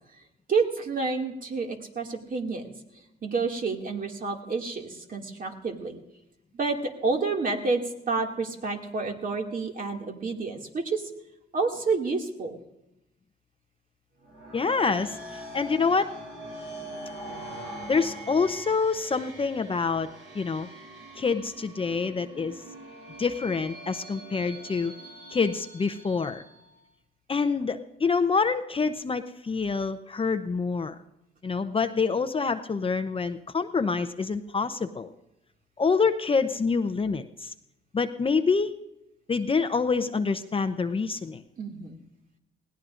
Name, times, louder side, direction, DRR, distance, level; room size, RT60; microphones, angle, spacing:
voice 1, 0.5-2.7 3.2-6.0 6.5-11.1 11.5-12.6 41.6-42.0, right 4 dB, 45° right, 2 dB, 2.2 m, -29 dB
sound 1, 14.2-26.7, right 1 dB, 80° right, 6.6 m, -43 dB
voice 2, 14.5-16.1 17.9-20.1 20.3-20.7 21.2-22.6 23.2-24.9 25.3-26.4 27.3-30.9 31.4-35.1 35.8-37.5 37.9-38.7 39.3-41.4, left 4 dB, 25° left, 9 dB, 0.7 m, -26 dB
20.5 x 17.0 x 2.5 m, 0.88 s
cardioid pair, 90°, 20 cm